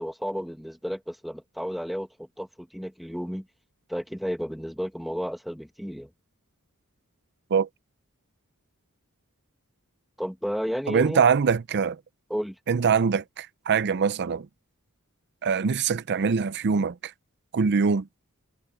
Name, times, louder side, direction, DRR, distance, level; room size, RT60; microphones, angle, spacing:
voice 1, 0.0-3.5 3.9-6.1 10.2-11.2 12.3-12.6, equal, ahead, 1.3 m, -32 dB
voice 2, 10.9-12.0 12.7-14.5 15.4-17.1 17.5-18.1, right 6 dB, 50° right, 0.5 m, -23 dB
head